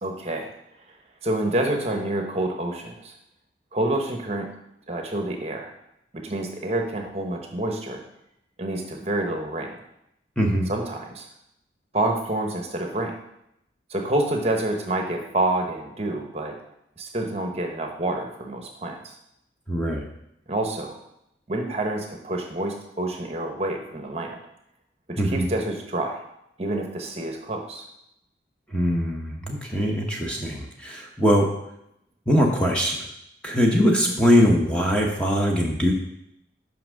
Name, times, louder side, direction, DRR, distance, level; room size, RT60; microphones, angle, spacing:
voice 1, 0.0-0.5 1.2-3.1 3.7-4.5 4.9-5.7 6.1-8.0 8.6-9.8 10.7-11.3 11.9-13.2 13.9-16.5 17.0-19.2 20.5-21.0 21.5-24.4 25.1-26.2 26.6-27.9, right 1 dB, 35° right, 2 dB, 0.9 m, -28 dB
voice 2, 10.4-10.7 19.7-20.1 25.2-25.5 28.7-31.5 32.3-33.1 33.4-35.9, equal, 5° left, -1 dB, 0.8 m, -21 dB
5.8 x 5.3 x 6.3 m, 0.81 s
head